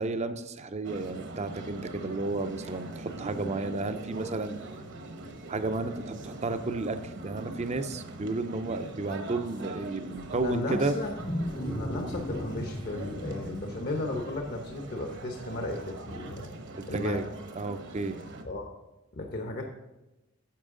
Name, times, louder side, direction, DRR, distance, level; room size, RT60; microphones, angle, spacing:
voice 1, 0.0-4.6 5.5-10.9 16.8-17.3 17.5-18.2, right 3 dB, 30° right, 10 dB, 0.5 m, -32 dB
sound 1, 0.8-18.4, right 2 dB, 60° right, 1.0 m, -42 dB
Wild animals, 10.2-15.2, equal, 20° left, 0.6 m, -37 dB
voice 2, 10.3-11.1 11.7-16.5 16.9-17.2 18.4-18.8 19.1-19.6, left 2 dB, 50° left, 2 dB, 0.9 m, -35 dB
10.0 x 7.1 x 3.7 m, 1.0 s
head